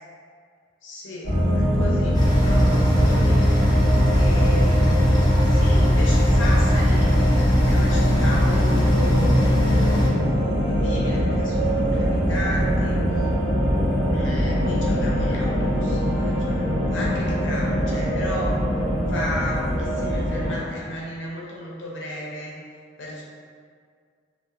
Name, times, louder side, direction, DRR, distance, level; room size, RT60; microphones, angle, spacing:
voice 1, 0.8-3.6 4.1-7.2 7.7-13.3 14.1-18.6 19.1-22.6 23.0-23.2, left 1 dB, 70° left, -4 dB, 0.5 m, -34 dB
sound 1, 1.2-20.5, equal, 85° right, 0.9 m, -22 dB
sound 2, 2.1-10.1, equal, 20° left, 0.3 m, -21 dB
2.4 x 2.0 x 2.6 m, 2.1 s
head